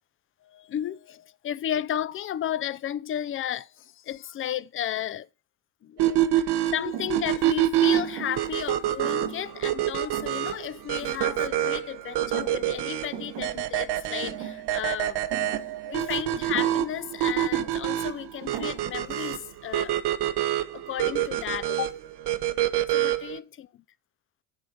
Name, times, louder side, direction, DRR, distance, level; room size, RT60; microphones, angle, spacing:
voice 1, 0.4-5.3 5.8-15.2 15.8-20.0 20.7-22.0 22.9-23.8, left 11 dB, 30° left, 0.4 m, -33 dB
sound 1, 6.0-23.4, right 12 dB, 55° right, 1.0 m, -27 dB
Thump thud, 6.9-11.9 12.2-12.8 13.1-19.2, right 10 dB, 80° right, 2.0 m, -41 dB
9.5 x 3.6 x 6.9 m
supercardioid pair, 80°, 48 cm